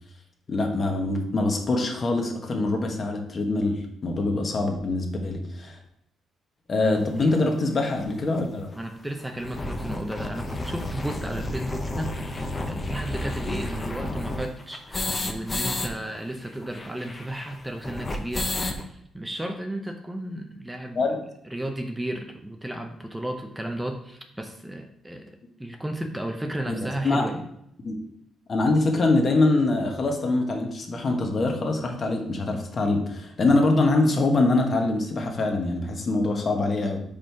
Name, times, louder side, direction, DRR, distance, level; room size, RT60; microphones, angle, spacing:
voice 1, 0.5-5.8 6.7-8.7 13.5-13.6 20.9-21.2 26.7-26.8 27.0-27.3 27.8-28.0 28.5-37.0, left 2 dB, 45° left, 3 dB, 1.2 m, -24 dB
voice 2, 7.0-7.5 8.7-21.0 21.4-25.3 25.6-27.5, right 1 dB, 10° right, 4 dB, 0.7 m, -34 dB
sound 1, 7.2-7.3 8.0-8.1 8.3-8.4 8.7-8.8 9.2-15.9 16.2-16.3 16.5-18.8, left 2 dB, 25° left, 0.7 m, -31 dB
5.1 x 4.2 x 4.6 m, 0.73 s
cardioid pair, 90°, 0 cm